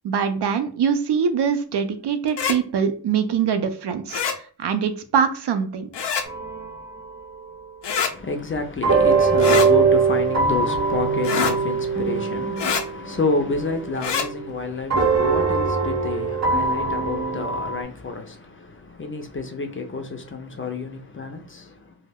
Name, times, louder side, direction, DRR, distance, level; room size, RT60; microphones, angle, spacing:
voice 1, 0.0-4.2 4.6-5.9, right 7 dB, 70° right, 0.5 m, -23 dB
sound 1, 2.3-2.6 4.1-4.4 5.9-6.3 7.8-8.1 9.4-9.7 11.2-11.6 12.6-12.8 14.0-14.3, left 6 dB, 85° left, 0.5 m, -24 dB
sound 2, 6.2-7.6 8.8-14.6 14.9-17.8, right 4 dB, 40° right, 0.8 m, -22 dB
voice 2, 8.1-22.0, left 3 dB, 30° left, 0.4 m, -29 dB
2.2 x 2.1 x 3.4 m
wide cardioid pair, 100°, 41 cm